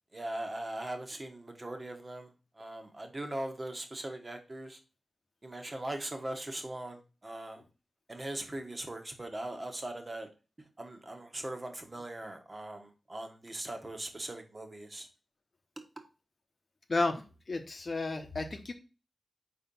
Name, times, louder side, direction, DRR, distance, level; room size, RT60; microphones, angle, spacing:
voice 1, 0.1-4.8 5.4-7.6 8.1-10.3 10.6-15.1, right 1 dB, 35° right, 5 dB, 1.6 m, -40 dB
voice 2, 16.9-18.7, left 2 dB, 55° left, 4 dB, 0.9 m, -32 dB
4.5 x 4.2 x 5.5 m, 0.32 s
cardioid pair, 40°, 0 cm